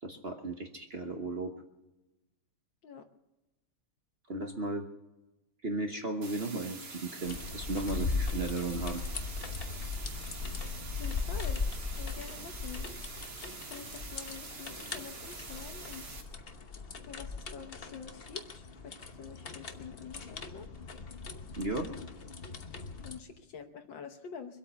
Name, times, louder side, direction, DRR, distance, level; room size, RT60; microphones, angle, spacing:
voice 1, 0.0-1.5 4.3-4.9 5.6-9.0 21.6-21.9, right 2 dB, 40° right, 5 dB, 0.9 m, -35 dB
sound 1, 6.2-16.2, right 4 dB, 70° right, 2.9 m, -46 dB
sound 2, 7.2-23.2, left 4 dB, 45° left, 0.8 m, -39 dB
voice 2, 11.0-11.6 12.0-12.9 13.6-16.2 17.0-20.7 21.9-22.1 23.0-24.6, left 6 dB, 65° left, 7 dB, 1.7 m, -47 dB
24.0 x 8.6 x 6.9 m, 1.0 s
omnidirectional pair, 2.4 m